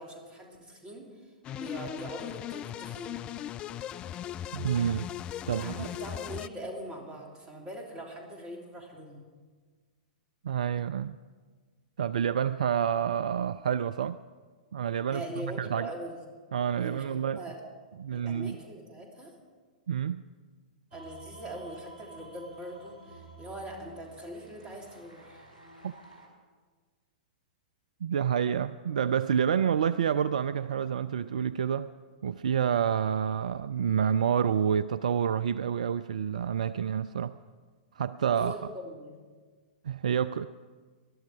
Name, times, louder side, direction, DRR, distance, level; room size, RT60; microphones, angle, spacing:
voice 1, 0.0-3.3 5.6-9.2 15.1-16.2 16.8-17.6 18.1-19.3 20.9-25.5 38.4-39.2, right 1 dB, 20° right, 0 dB, 3.2 m, -42 dB
sound 1, 1.4-6.5, left 11 dB, 20° left, 0.3 m, -38 dB
voice 2, 4.5-5.1 5.5-5.9 10.4-11.2 12.0-14.2 14.7-15.9 16.5-17.4 18.0-18.6 19.9-20.2 25.8-25.9 28.0-31.9 32.2-37.4 37.9-38.6 39.8-40.5, right 8 dB, 60° right, 15 dB, 0.3 m, -28 dB
sound 2, 20.9-26.3, right 2 dB, 85° left, 4.7 m, -51 dB
21.0 x 11.5 x 4.9 m, 1.5 s
figure-of-eight pair, 105°, 4 cm